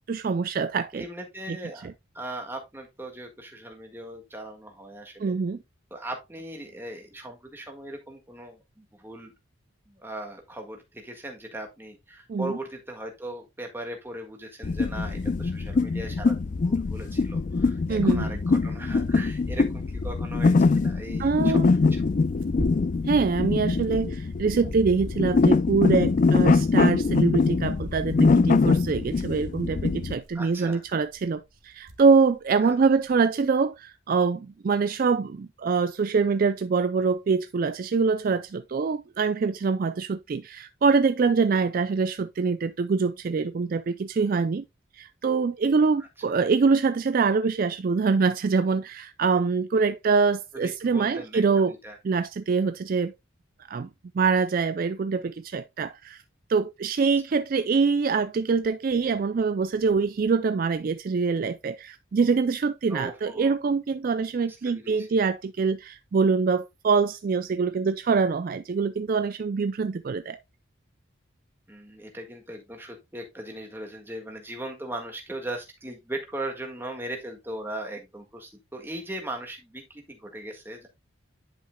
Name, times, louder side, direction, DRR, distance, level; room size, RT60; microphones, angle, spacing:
voice 1, 0.1-1.0 1.5-1.6 1.8-1.9 5.2-5.6 12.3-12.5 17.9-18.4 21.2-21.7 23.0-44.6 44.9-51.7 52.0-53.1 53.7-53.9 54.1-56.2 56.5-70.4, right 4 dB, 45° right, 0.3 m, -24 dB
voice 2, 0.9-5.3 5.9-9.3 9.9-22.1 30.3-30.8 32.6-32.7 50.5-51.4 51.8-52.0 62.9-63.5 64.6-65.1 71.7-80.9, right 1 dB, 10° right, 1.7 m, -39 dB
sound 1, 14.6-30.1, left 4 dB, 40° left, 0.3 m, -23 dB
Tearing, 21.5-33.2, right 1 dB, 75° right, 1.4 m, -46 dB
10.5 x 5.6 x 2.2 m
head